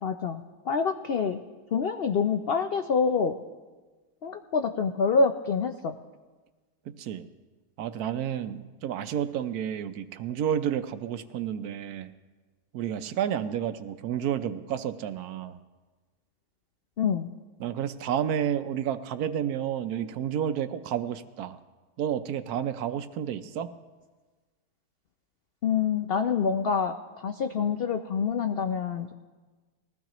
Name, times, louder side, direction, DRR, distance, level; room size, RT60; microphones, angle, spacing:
voice 1, 0.0-1.4 1.7-3.4 4.2-6.0 17.0-17.3 25.6-26.9 27.2-29.1, left 5 dB, 75° left, 7 dB, 0.5 m, -26 dB
voice 2, 6.9-7.2 7.8-12.1 12.7-15.6 17.6-21.6 22.0-23.7, right 9 dB, 75° right, 11 dB, 1.1 m, -30 dB
20.5 x 15.5 x 3.0 m, 1.3 s
omnidirectional pair, 1.7 m